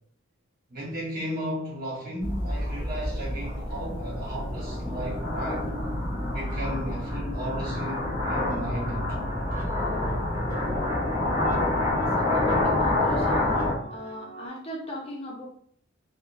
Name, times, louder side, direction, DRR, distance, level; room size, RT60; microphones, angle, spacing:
voice 1, 0.7-5.7 6.3-9.2, right 1 dB, 45° right, 1.2 m, -35 dB
sound 1, 2.2-13.7, left 1 dB, 25° right, 1.0 m, -27 dB
sound 2, 6.5-14.5, equal, 75° right, 0.7 m, -42 dB
voice 2, 12.1-13.6 13.9-15.4, equal, 30° left, 0.6 m, -38 dB
3.4 x 2.1 x 2.6 m
head